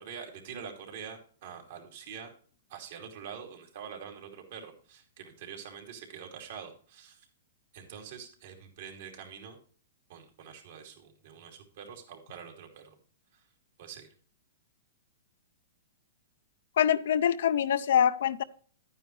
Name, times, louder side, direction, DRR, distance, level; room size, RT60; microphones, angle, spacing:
voice 1, 0.0-2.3 2.7-7.3 7.7-9.6 10.1-13.0 13.3-13.4 13.8-14.1, right 7 dB, 60° right, 2 dB, 2.7 m, -45 dB
voice 2, 16.8-18.4, left 9 dB, 70° left, 11 dB, 0.5 m, -24 dB
10.5 x 9.4 x 3.1 m, 0.43 s
hypercardioid pair, 140°, 0 cm